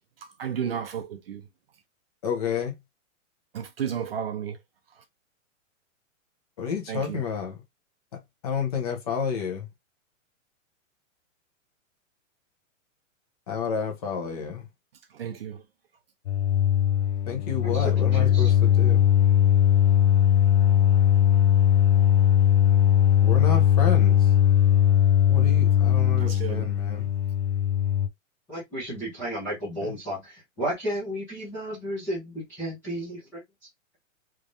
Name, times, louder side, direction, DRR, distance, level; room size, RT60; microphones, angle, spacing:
voice 1, 0.4-1.4 3.5-4.6 6.9-7.2 15.1-15.6 26.2-26.7, right 8 dB, 45° right, 0.7 m, -32 dB
voice 2, 2.2-2.7 6.6-7.6 8.4-9.7 13.5-14.7 17.3-19.1 23.2-24.3 25.3-27.1 29.8-29.9, left 6 dB, 30° left, 1.0 m, -30 dB
sound 1, 16.3-28.1, left 10 dB, 60° left, 0.5 m, -20 dB
voice 3, 17.6-18.5 28.5-33.4, equal, 5° left, 0.7 m, -33 dB
3.5 x 3.3 x 2.5 m
hypercardioid pair, 180°, 40 cm